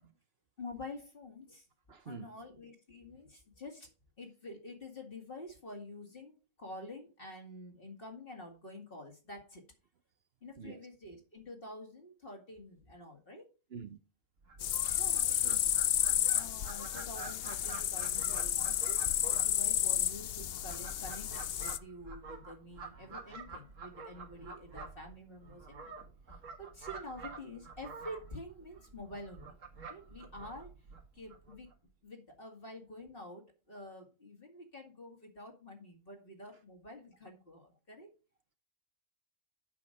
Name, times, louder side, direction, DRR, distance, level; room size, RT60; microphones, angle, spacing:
voice 1, 0.6-1.7 2.0-3.9 4.2-9.6 10.4-13.5 14.6-15.4 16.3-25.9 26.3-29.6 29.9-30.7 31.1-31.7 32.0-38.1, left 1 dB, 45° left, 2.4 m, -48 dB
voice 2, 1.9-2.3 10.6-10.9 13.7-14.0 15.3-15.6, right 7 dB, 55° right, 0.9 m, -46 dB
Fowl, 14.4-31.7, right 4 dB, 80° right, 2.0 m, -49 dB
sound 1, 14.6-21.8, left 11 dB, 60° left, 0.7 m, -32 dB
8.4 x 6.0 x 5.1 m
omnidirectional pair, 1.3 m